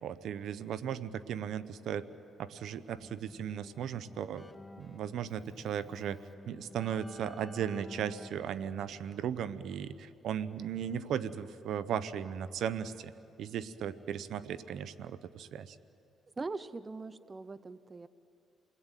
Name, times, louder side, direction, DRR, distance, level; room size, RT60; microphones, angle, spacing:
voice 1, 0.0-2.1 2.4-4.4 4.8-6.2 6.5-13.1 13.4-15.8, right 9 dB, 75° right, 14 dB, 0.9 m, -36 dB
Keyboard (musical), 3.0-10.3, left 2 dB, 15° left, 1.3 m, -53 dB
voice 2, 16.4-18.1, right 3 dB, 25° right, 13 dB, 0.8 m, -41 dB
29.5 x 20.5 x 9.2 m, 2.7 s
cardioid pair, 90°, 0 cm